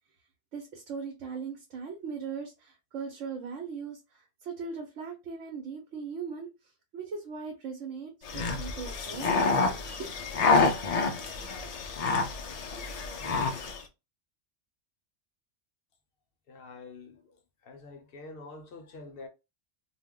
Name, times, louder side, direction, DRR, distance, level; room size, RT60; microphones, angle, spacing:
voice 1, 0.5-10.1, right 5 dB, 85° right, 1.0 m, -39 dB
sound 1, 8.3-13.8, left 4 dB, 75° left, 0.3 m, -28 dB
voice 2, 16.5-17.3 17.6-19.3, left 3 dB, 60° left, 0.7 m, -46 dB
2.4 x 2.1 x 3.5 m
omnidirectional pair, 1.3 m